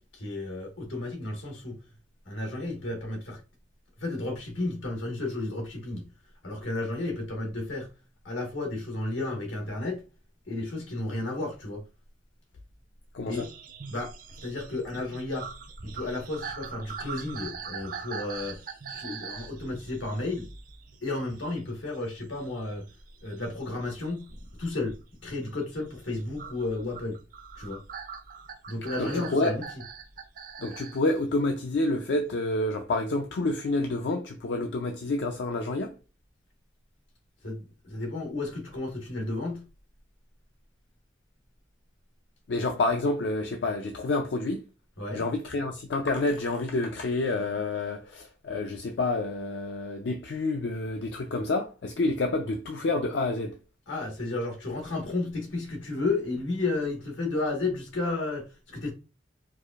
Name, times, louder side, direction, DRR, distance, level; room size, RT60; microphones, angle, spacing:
voice 1, 0.1-1.8 2.2-3.4 4.0-6.1 6.4-7.9 8.2-10.0 10.5-11.8 13.3-13.4 13.9-14.1 14.4-15.5 15.8-18.6 18.9-20.5 21.0-22.8 23.2-24.9 25.2-27.2 27.6-27.8 28.7-29.6 37.4-39.6 45.0-45.2 53.9-58.9, left 2 dB, 85° left, 1.4 m, -32 dB
voice 2, 13.1-13.5 29.0-29.5 30.6-36.0 42.5-44.6 45.1-53.6, left 2 dB, 65° left, 0.4 m, -28 dB
sound 1, 13.3-21.6 21.9-24.3 24.8-25.2 26.4-31.0 32.3-32.4, right 6 dB, 45° right, 0.4 m, -42 dB
4.6 x 2.4 x 2.4 m
head